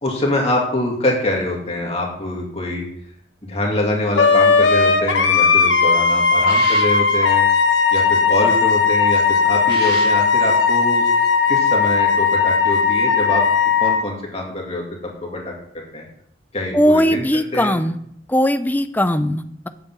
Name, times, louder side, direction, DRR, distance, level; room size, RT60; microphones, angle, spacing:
voice 1, 0.0-2.9 3.4-7.4 7.9-11.0 11.5-16.0 16.5-17.8, left 1 dB, 35° left, -1 dB, 2.3 m, -24 dB
Wind instrument woodwind instrument, 4.2-14.0, left 5 dB, 85° left, 1.1 m, -16 dB
sound 1, 6.2-8.8 9.2-10.7 10.9-11.3, right 4 dB, 55° right, 1.8 m, -35 dB
voice 2, 16.7-18.0 18.3-19.7, equal, 10° left, 10 dB, 0.5 m, -18 dB
8.2 x 6.9 x 7.4 m, 0.71 s
head